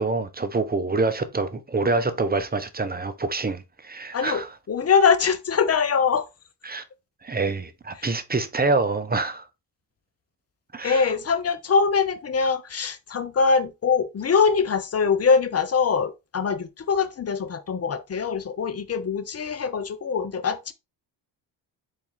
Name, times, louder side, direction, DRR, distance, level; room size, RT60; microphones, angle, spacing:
voice 1, 0.0-4.5 6.7-6.8 7.2-9.5 10.7-11.0, right 3 dB, 20° right, 0.7 m, -26 dB
voice 2, 4.1-6.3 8.0-8.2 10.8-20.7, left 5 dB, 35° left, 0.7 m, -23 dB
4.1 x 2.8 x 3.9 m
supercardioid pair, 60°, 45 cm